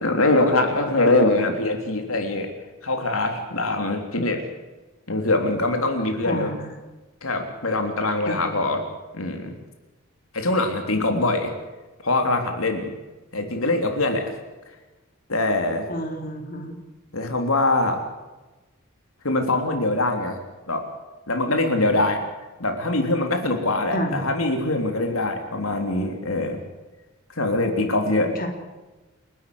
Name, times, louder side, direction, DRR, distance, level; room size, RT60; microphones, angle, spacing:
voice 1, 0.0-2.5 2.8-4.4 5.1-6.5 7.2-8.9 9.1-9.5 10.3-11.5 12.0-12.9 13.3-14.3 15.3-15.9 17.1-18.0 19.2-20.4 20.7-20.9 21.3-22.2 22.6-26.6 27.4-28.3, left 2 dB, 75° left, 5 dB, 3.5 m, -23 dB
voice 2, 6.2-6.7 8.3-8.4 15.9-16.8 23.9-24.3 28.4-28.5, equal, 40° left, 3 dB, 3.7 m, -29 dB
30.0 x 12.5 x 8.0 m, 1.2 s
head